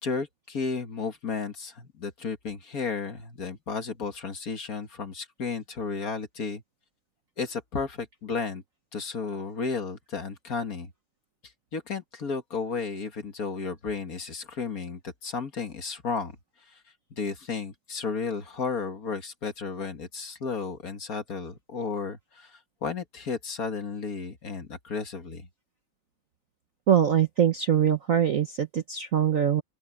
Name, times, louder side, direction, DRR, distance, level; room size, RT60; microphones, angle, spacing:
voice 1, 0.0-6.6 7.4-8.6 8.9-10.9 11.7-16.4 16.7-16.8 17.2-25.5, left 5 dB, 45° left, 2.0 m, -33 dB
voice 2, 26.9-29.6, right 9 dB, 50° right, 1.0 m, -23 dB
open air
omnidirectional pair, 2.3 m